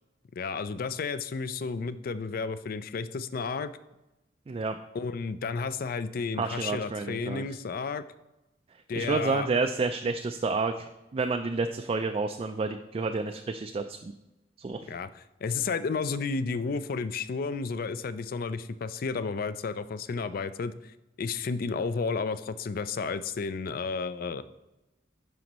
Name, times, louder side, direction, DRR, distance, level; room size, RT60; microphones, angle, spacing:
voice 1, 0.3-3.7 4.9-8.0 8.9-9.5 14.9-24.4, left 4 dB, 50° left, 14 dB, 0.4 m, -32 dB
voice 2, 4.5-4.8 6.4-7.4 8.9-14.1 14.6-14.8, right 3 dB, 30° right, 6 dB, 0.3 m, -30 dB
11.0 x 5.1 x 3.0 m, 0.99 s
head